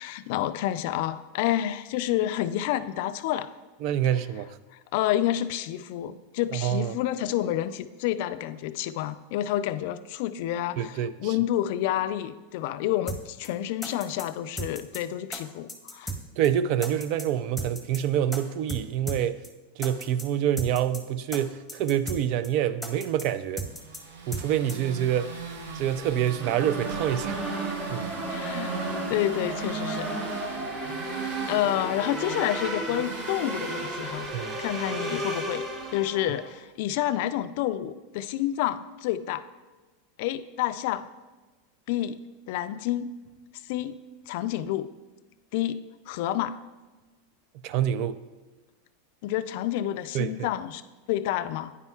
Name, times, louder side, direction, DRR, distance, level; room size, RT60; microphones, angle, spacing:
voice 1, 0.0-3.5 4.9-16.1 28.3-30.1 30.7-31.1 31.5-34.3 34.6-35.7 35.9-39.5 40.2-41.1 41.9-42.2 42.5-43.1 43.7-43.9 44.3-44.9 45.5-45.8 46.1-46.6 49.2-50.8 51.1-51.7, left 13 dB, 60° left, 12 dB, 0.3 m, -29 dB
voice 2, 3.8-4.6 6.5-7.0 10.8-11.3 16.4-19.4 19.8-23.6 24.3-25.3 25.7-27.4 27.9-28.1 34.3-34.6 47.5-48.2 50.1-50.5, right 10 dB, 55° right, 13 dB, 0.4 m, -27 dB
sound 1, 13.1-13.2 13.4-13.5 13.8-14.3 14.6-15.0 15.3-15.4 15.7-16.2 16.4-16.5 16.8-17.3 17.6-18.0 18.3-18.4 18.7-18.8 19.1-19.2 19.4-19.5 19.8-20.3 20.6-21.0 21.3-21.4 21.7-22.2 22.4-22.5 22.8-23.3 23.6-24.0 24.3-24.4 24.7-24.8, right 1 dB, 5° left, 1.0 m, -35 dB
sound 2, 23.6-36.5, right 5 dB, 80° right, 0.9 m, -40 dB
sound 3, 26.4-36.5, right 2 dB, 30° right, 2.1 m, -33 dB
9.6 x 5.4 x 2.4 m, 1.3 s
hypercardioid pair, 105°, 0 cm